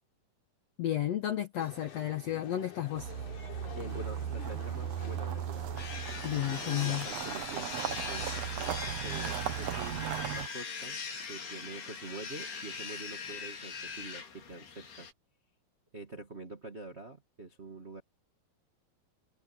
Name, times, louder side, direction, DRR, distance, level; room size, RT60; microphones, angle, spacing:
voice 1, 0.8-3.1 6.2-7.1, left 12 dB, 75° left, 1.5 m, -32 dB
sound 1, 1.6-7.1, left 7 dB, 55° left, 4.1 m, -49 dB
sound 2, 3.0-10.5, right 10 dB, 85° right, 1.4 m, -37 dB
voice 2, 3.7-5.7 6.5-11.0 11.3-15.1 15.9-18.0, right 2 dB, 50° right, 0.7 m, -46 dB
sound 3, 5.8-15.1, left 5 dB, 90° left, 6.6 m, -41 dB
omnidirectional pair, 4.4 m